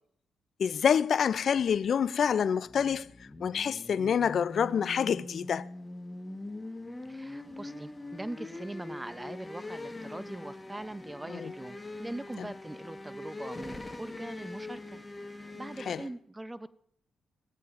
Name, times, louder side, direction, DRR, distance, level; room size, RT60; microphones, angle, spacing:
voice 1, 0.6-3.1 3.4-5.7 11.3-11.5 15.9-16.0, left 7 dB, 65° left, 0.3 m, -27 dB
sound 1, 2.6-16.1, left 2 dB, 20° left, 1.2 m, -43 dB
voice 2, 7.1-15.0 15.5-16.7, right 1 dB, 15° right, 0.5 m, -42 dB
18.0 x 8.5 x 2.5 m
supercardioid pair, 60°, 0 cm